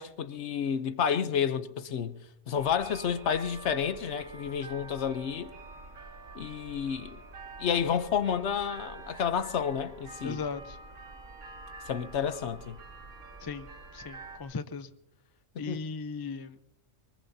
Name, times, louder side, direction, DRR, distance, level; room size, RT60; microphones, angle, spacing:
voice 1, 0.0-2.2 2.5-5.5 6.3-7.2 7.6-10.4 11.9-12.8 15.6-15.8, left 7 dB, 65° left, 1.0 m, -30 dB
sound 1, 2.5-14.4, right 3 dB, 75° right, 2.2 m, -47 dB
voice 2, 10.2-10.6 13.4-13.7 13.9-14.9 15.6-16.6, left 4 dB, 30° left, 0.4 m, -37 dB
23.5 x 20.5 x 2.7 m
omnidirectional pair, 1.3 m